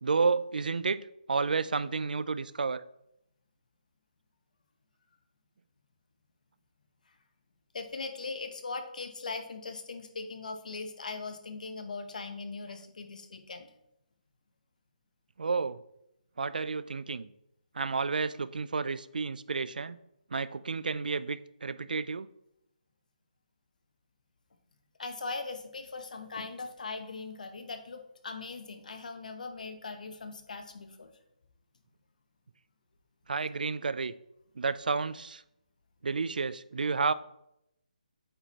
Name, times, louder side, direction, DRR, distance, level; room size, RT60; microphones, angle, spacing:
voice 1, 0.0-2.8 15.4-15.8 16.4-17.3 17.7-20.0 20.3-22.3 33.3-34.1 34.6-35.4 36.0-37.1, right 4 dB, 90° right, 0.3 m, -31 dB
voice 2, 7.7-13.7 25.0-31.1, left 4 dB, 65° left, 0.9 m, -40 dB
8.5 x 4.3 x 2.9 m
hypercardioid pair, 165°, 5 cm